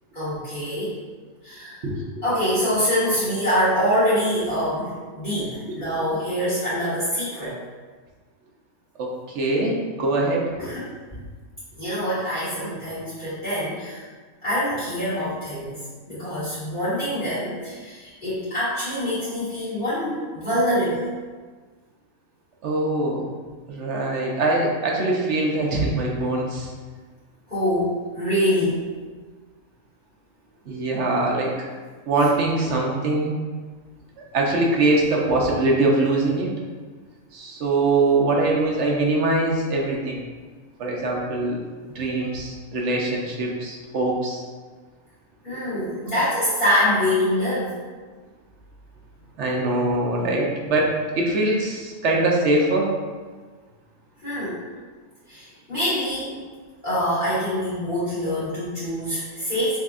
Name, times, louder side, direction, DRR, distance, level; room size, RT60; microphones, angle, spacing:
voice 1, 0.1-1.0 1.4-1.8 2.2-7.6 10.6-10.9 11.8-14.0 14.4-15.8 16.1-21.1 27.5-28.9 45.4-47.8 54.2-54.6 55.3-56.4 56.8-59.8, equal, 35° left, -13 dB, 1.7 m, -25 dB
voice 2, 9.3-10.4 22.6-23.2 23.7-26.7 30.7-31.5 32.1-33.4 34.3-36.5 37.3-40.2 40.8-41.6 41.9-44.4 49.4-52.9, right 2 dB, 60° right, -1 dB, 0.9 m, -22 dB
6.1 x 2.8 x 2.4 m, 1.4 s
omnidirectional pair, 1.5 m